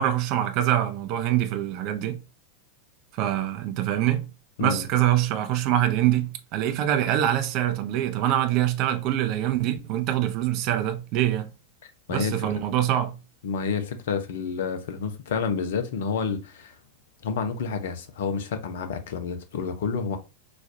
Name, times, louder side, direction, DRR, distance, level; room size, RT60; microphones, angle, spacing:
voice 1, 0.0-2.2 3.2-4.3 4.6-11.5 12.1-13.2, right 12 dB, 40° right, 0.5 m, -24 dB
voice 2, 12.1-12.6 13.4-16.8 17.2-20.2, left 5 dB, 55° left, 0.6 m, -29 dB
4.1 x 2.4 x 2.6 m
figure-of-eight pair, 90°, 0 cm